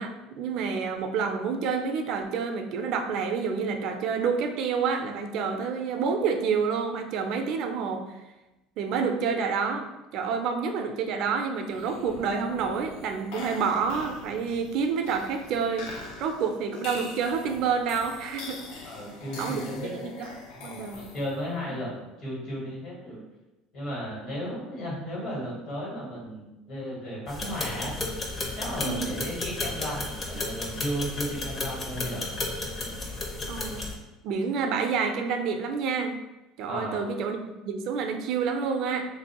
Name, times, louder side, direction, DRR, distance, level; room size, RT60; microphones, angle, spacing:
voice 1, 0.0-8.2 8.8-9.9 10.1-15.9 16.2-18.9 19.4-19.7 20.0-20.3 20.6-21.1 21.7-21.8 28.8-29.2 33.5-33.9 34.2-36.2 36.6-39.1, right 5 dB, 60° right, 6 dB, 0.4 m, -28 dB
sound 1, 11.6-21.5, left 3 dB, 75° left, 0.5 m, -43 dB
voice 2, 18.8-20.1 20.5-23.2 23.7-27.9 28.6-32.3 36.6-37.1, equal, 60° left, -5 dB, 1.5 m, -35 dB
sound 2, 27.3-33.9, left 2 dB, 30° left, 0.6 m, -33 dB
3.1 x 2.5 x 2.8 m, 1.0 s
supercardioid pair, 115°, 0 cm